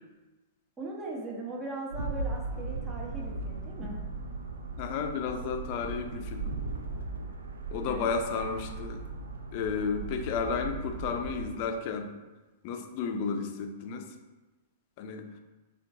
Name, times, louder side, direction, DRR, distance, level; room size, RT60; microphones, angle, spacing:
voice 1, 0.8-4.0 7.9-8.1, right 2 dB, 25° right, -2 dB, 1.1 m, -39 dB
sound 1, 1.9-11.5, right 3 dB, 75° right, 0.5 m, -37 dB
voice 2, 4.8-6.5 7.7-9.0 9.5-12.1 12.6-14.1 15.0-15.2, left 5 dB, 45° left, 5 dB, 0.5 m, -32 dB
7.0 x 2.5 x 2.6 m, 1.2 s
figure-of-eight pair, 100°, 0 cm